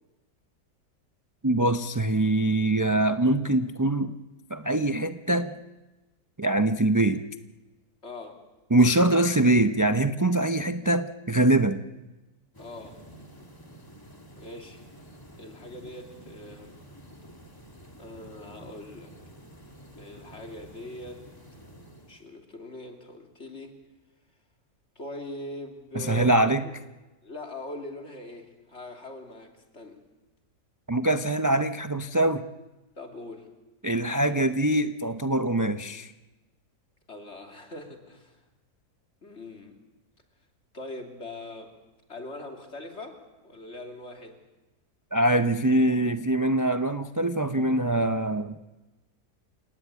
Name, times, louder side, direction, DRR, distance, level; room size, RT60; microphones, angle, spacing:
voice 1, 1.4-4.1 4.5-5.6 6.4-7.2 8.7-11.8 25.9-26.6 30.9-32.5 33.8-36.1 45.1-48.6, right 1 dB, 25° right, 8 dB, 0.4 m, -23 dB
voice 2, 8.0-8.4 12.6-13.0 14.3-14.8 15.4-16.8 18.0-19.2 20.0-21.2 22.1-23.8 24.9-26.5 27.2-30.0 33.0-33.5 37.1-38.4 39.2-39.8 40.7-41.7 42.1-43.2 43.4-44.4, left 2 dB, 40° left, 3 dB, 3.2 m, -41 dB
sound 1, 12.5-22.3, equal, 15° left, 2.2 m, -49 dB
29.0 x 18.5 x 8.5 m, 1.1 s
omnidirectional pair, 1.7 m